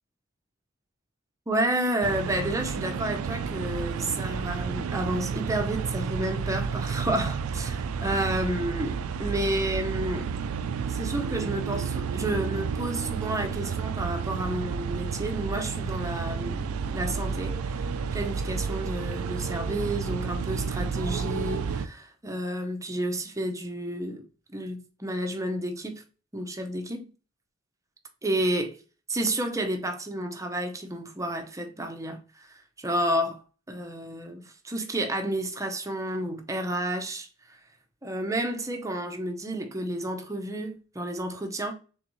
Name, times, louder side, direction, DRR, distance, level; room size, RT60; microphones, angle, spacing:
voice 1, 1.5-10.3 10.9-17.8 18.1-24.2 24.5-26.0 26.3-27.1 28.2-28.8 29.1-33.4 33.7-37.6 38.0-41.7, right 1 dB, 15° right, 0.6 m, -31 dB
sound 1, 2.0-21.9, right 6 dB, 90° right, 0.3 m, -31 dB
3.9 x 3.5 x 3.0 m
head